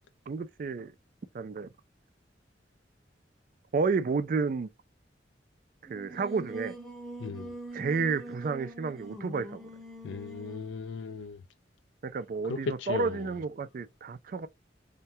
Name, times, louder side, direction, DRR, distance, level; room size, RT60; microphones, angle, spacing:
voice 1, 0.3-0.9 1.3-1.7 3.7-4.7 5.9-6.7 7.7-9.6 12.0-14.5, right 4 dB, 50° right, 0.3 m, -31 dB
Singing, 5.9-10.7, right 1 dB, ahead, 0.6 m, -43 dB
voice 2, 7.2-7.5 10.0-11.4 12.5-13.3, left 4 dB, 85° left, 0.4 m, -36 dB
3.3 x 2.2 x 2.7 m
head